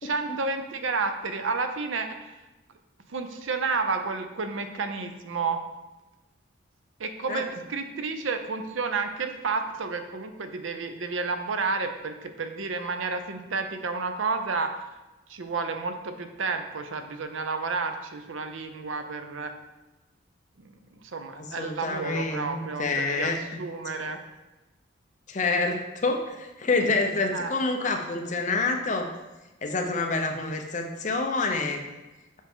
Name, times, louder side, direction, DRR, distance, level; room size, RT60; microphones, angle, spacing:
voice 1, 0.0-2.4 3.1-5.6 7.0-14.9 15.3-19.5 20.6-24.2 27.3-27.6, right 4 dB, 75° right, 7 dB, 0.6 m, -31 dB
voice 2, 21.4-23.6 24.0-24.2 25.3-29.1 29.6-31.8, left 3 dB, 35° left, 4 dB, 0.6 m, -27 dB
7.3 x 4.5 x 3.6 m, 1.1 s
head